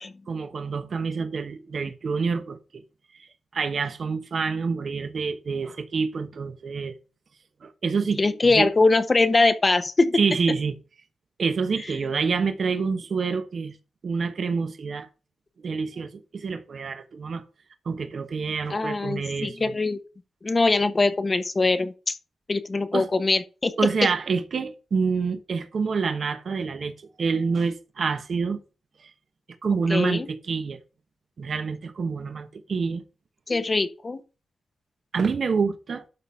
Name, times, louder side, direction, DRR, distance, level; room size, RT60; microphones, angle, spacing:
voice 1, 0.3-2.8 3.5-6.9 7.6-8.7 10.1-10.8 11.4-13.8 14.0-15.1 15.6-17.4 17.8-19.7 22.9-23.1 23.8-26.9 27.2-28.6 29.0-29.1 29.6-30.8 31.4-33.0 35.1-36.0, right 5 dB, 55° right, 1.2 m, -27 dB
voice 2, 8.2-10.2 18.7-20.0 20.4-22.2 22.5-23.7 29.9-30.3 33.5-34.2, left 3 dB, 30° left, 1.0 m, -22 dB
12.0 x 4.0 x 5.7 m
wide cardioid pair, 105°, 0 cm